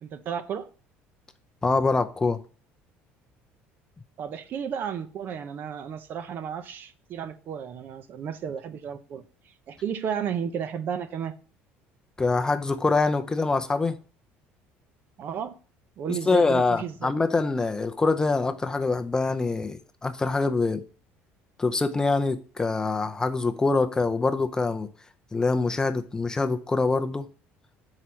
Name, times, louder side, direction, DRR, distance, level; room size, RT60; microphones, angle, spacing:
voice 1, 0.0-0.7 4.2-11.3 15.2-15.6 16.0-17.1, right 8 dB, 45° right, 0.7 m, -33 dB
voice 2, 1.6-2.4 12.2-14.0 16.1-20.8 21.6-24.9 25.3-27.3, left 3 dB, 15° left, 0.5 m, -24 dB
5.5 x 4.8 x 5.9 m
cardioid pair, 130°, 5 cm